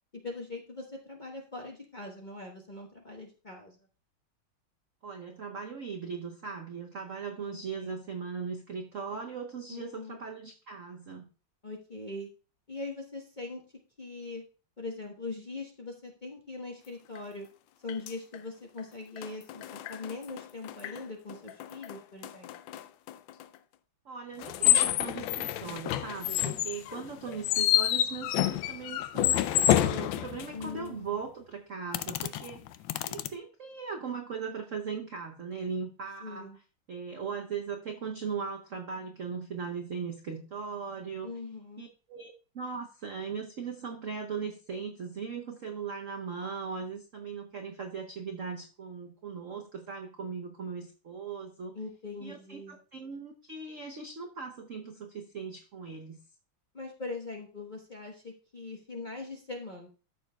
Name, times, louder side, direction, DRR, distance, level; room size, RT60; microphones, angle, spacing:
voice 1, 0.2-3.8 7.4-8.0 9.7-10.2 11.6-12.3 12.7-13.6 14.0-14.4 14.8-17.5 17.8-22.5 30.5-31.2 36.2-36.6 41.2-41.9 51.7-52.8 56.7-59.9, left 3 dB, 30° left, 0 dB, 0.9 m, -41 dB
voice 2, 5.0-11.3 24.1-32.6 33.1-36.5 36.9-41.3 41.8-51.8 52.2-56.2, right 5 dB, 60° right, 3 dB, 0.8 m, -39 dB
sound 1, 17.1-17.2 17.9-18.4 18.8-18.9 19.2-21.0 21.3-23.4 24.4-30.8 31.9-33.3, left 12 dB, 75° left, 1.2 m, -29 dB
13.0 x 6.8 x 2.3 m, 0.35 s
omnidirectional pair, 2.3 m